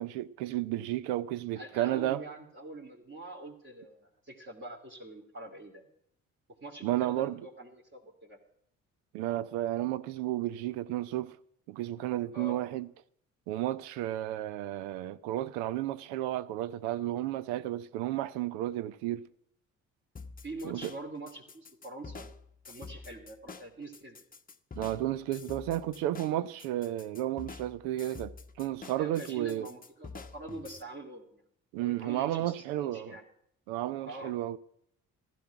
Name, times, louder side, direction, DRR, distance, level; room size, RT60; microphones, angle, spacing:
voice 1, 0.0-2.2 6.8-7.4 9.1-11.4 11.7-12.9 13.5-19.2 20.6-20.9 24.7-29.7 31.7-33.2 33.7-34.6, right 14 dB, 75° right, 0.7 m, -32 dB
voice 2, 1.5-5.9 6.5-8.4 12.3-12.6 20.4-22.3 22.6-24.2 28.9-31.4 31.8-33.2 34.1-34.3, right 2 dB, 30° right, 2.9 m, -44 dB
sound 1, 20.2-30.8, left 4 dB, 20° left, 0.9 m, -47 dB
15.0 x 12.5 x 5.9 m
hypercardioid pair, 45°, 40 cm